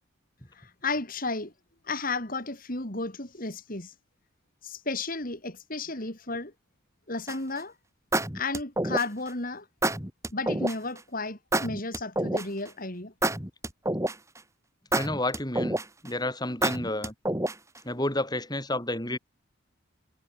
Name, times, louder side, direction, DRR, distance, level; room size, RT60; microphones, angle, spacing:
voice 1, 0.5-1.5 1.8-3.9 4.6-6.5 7.1-7.7 8.3-9.7 10.3-13.1, left 3 dB, 40° left, 3.9 m, -33 dB
sound 1, 7.3-7.6 8.1-9.3 9.8-10.8 11.5-12.7 13.2-14.4 14.9-16.1 16.6-17.8, right 1 dB, 15° right, 2.7 m, -28 dB
voice 2, 14.9-15.8 16.0-17.1 17.8-19.2, left 1 dB, 20° left, 6.3 m, -30 dB
head